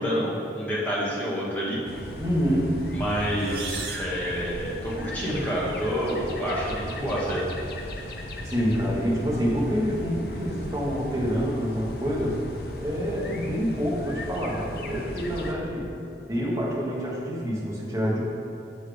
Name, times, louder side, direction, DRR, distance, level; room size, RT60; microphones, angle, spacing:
voice 1, 0.0-1.8 2.9-7.4, equal, 10° left, -6 dB, 1.2 m, -28 dB
sound 1, 1.8-15.5, left 1 dB, 55° left, 0.6 m, -37 dB
voice 2, 2.2-2.7 8.4-12.4 12.8-15.9 16.3-18.2, equal, 20° right, -5 dB, 1.1 m, -27 dB
sound 2, 3.3-5.2, right 4 dB, 55° right, 0.7 m, -38 dB
7.3 x 4.1 x 5.0 m, 2.7 s
head